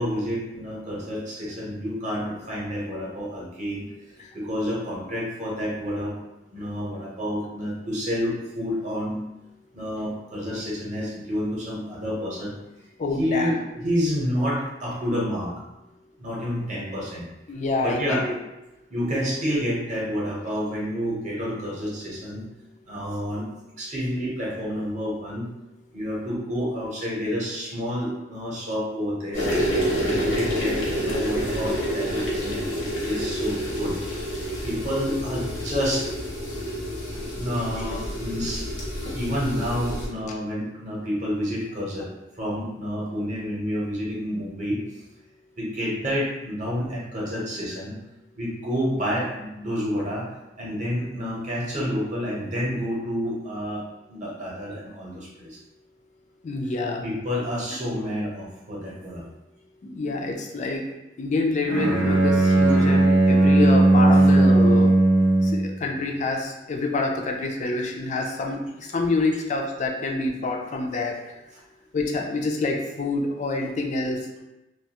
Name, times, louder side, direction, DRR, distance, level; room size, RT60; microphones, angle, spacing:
voice 1, 0.0-3.8 4.3-6.1 6.5-9.2 9.7-12.5 13.2-15.5 16.2-17.2 17.8-18.3 18.9-22.4 22.9-23.4 23.8-25.5 25.9-29.4 30.0-33.9 34.6-36.1 37.3-38.7 39.1-42.1 42.4-44.8 45.6-47.9 48.4-50.3 50.6-53.8 54.1-55.6 57.0-59.2 71.5-71.6, equal, 40° right, -5 dB, 0.8 m, -29 dB
voice 2, 13.0-13.6 17.5-18.4 56.4-57.1 59.8-60.8 61.2-64.9 65.4-71.1 71.9-74.2, left 2 dB, 40° left, 1 dB, 0.4 m, -27 dB
sound 1, 29.3-40.1, equal, 75° left, 0.8 m, -28 dB
Bowed string instrument, 61.7-65.7, right 2 dB, 90° right, 0.4 m, -17 dB
2.4 x 2.2 x 2.8 m, 0.96 s
head